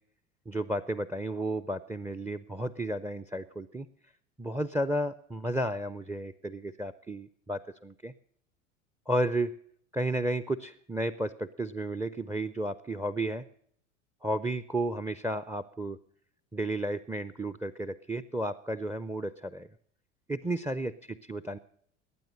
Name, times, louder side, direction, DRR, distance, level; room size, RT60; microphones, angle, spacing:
voice 1, 0.5-3.9 4.4-8.1 9.1-9.5 9.9-13.4 14.2-16.0 16.5-19.7 20.3-21.6, right 1 dB, 5° right, 15 dB, 0.5 m, -32 dB
20.0 x 9.1 x 6.3 m, 0.65 s
hypercardioid pair, 75°, 37 cm